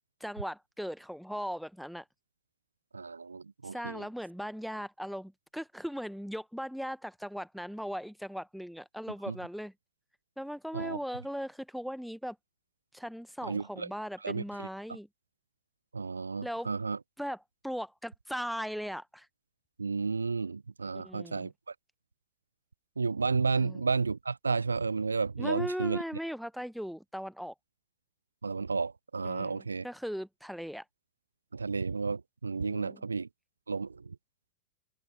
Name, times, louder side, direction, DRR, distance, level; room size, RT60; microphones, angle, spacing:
voice 1, 0.2-2.0 3.7-9.7 10.4-12.4 12.9-15.1 16.4-16.7 17.2-19.3 20.9-21.5 23.6-23.8 25.4-27.5 29.2-30.8 32.6-33.0, equal, ahead, 1.3 m, -38 dB
voice 2, 2.9-4.0 9.3-9.4 10.7-11.0 13.4-13.9 14.2-14.7 15.9-17.0 19.8-21.7 23.0-26.0 28.4-29.9 31.5-33.3 33.7-34.2, right 4 dB, 75° right, 0.6 m, -32 dB
figure-of-eight pair, 90°, 0 cm